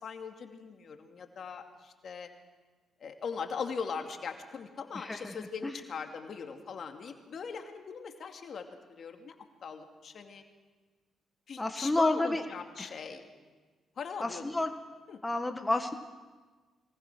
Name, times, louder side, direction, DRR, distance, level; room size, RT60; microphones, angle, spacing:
voice 1, 0.0-2.3 3.0-9.3 9.6-10.4 11.5-13.3 14.0-14.4 15.1-15.2, left 6 dB, 60° left, 4 dB, 2.4 m, -40 dB
voice 2, 4.9-5.4 5.6-5.7 11.6-12.4 12.8-12.9 14.2-14.7 15.2-15.9, left 2 dB, 15° left, 6 dB, 1.6 m, -30 dB
23.5 x 19.0 x 6.2 m, 1.4 s
supercardioid pair, 60°, 0 cm